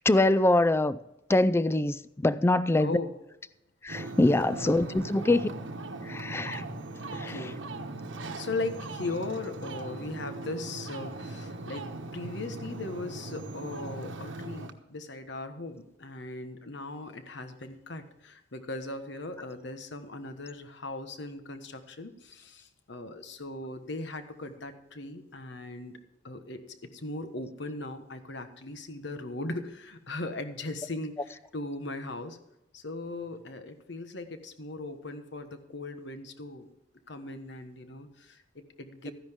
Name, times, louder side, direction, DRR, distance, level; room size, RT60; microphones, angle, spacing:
voice 1, 0.1-1.0 1.3-2.9 3.8-5.5 6.1-6.6 7.2-7.3, left 2 dB, 15° left, 0.3 m, -24 dB
voice 2, 2.8-3.1 4.6-5.0 7.1-7.6 8.3-26.0 26.2-32.4 32.7-36.7 37.1-39.1, left 2 dB, 65° left, 1.3 m, -38 dB
Ocean, 3.9-14.7, right 2 dB, 80° right, 1.1 m, -39 dB
14.0 x 10.5 x 3.6 m
head